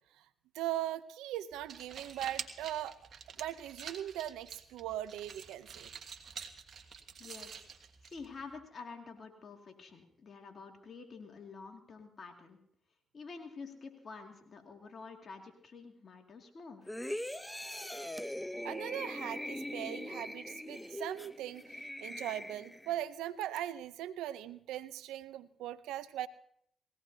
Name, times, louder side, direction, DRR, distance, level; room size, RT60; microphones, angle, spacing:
voice 1, 0.5-3.0 3.4-5.9 18.6-26.3, right 12 dB, 85° right, 13 dB, 0.6 m, -40 dB
sound 1, 1.5-8.5, right 6 dB, 65° right, 1.5 m, -48 dB
voice 2, 7.2-7.7 8.0-12.6 13.1-16.9, left 4 dB, 55° left, 3 dB, 2.3 m, -49 dB
sound 2, 16.9-23.0 23.4-23.6, left 1 dB, 5° left, 0.8 m, -41 dB
20.0 x 17.0 x 2.8 m, 0.68 s
supercardioid pair, 50°, 0 cm